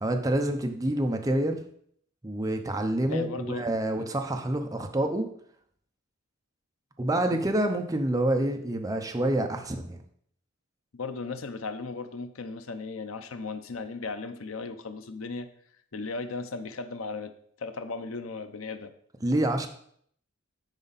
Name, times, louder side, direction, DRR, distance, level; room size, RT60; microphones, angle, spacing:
voice 1, 0.0-1.6 2.2-5.3 7.0-10.0 19.2-19.7, right 1 dB, 15° right, 4 dB, 0.7 m, -27 dB
voice 2, 3.1-3.7 4.0-4.1 7.3-7.4 10.9-15.5 15.9-17.3 17.6-18.9, left 4 dB, 80° left, 10 dB, 0.7 m, -36 dB
9.0 x 5.2 x 4.1 m, 0.64 s
head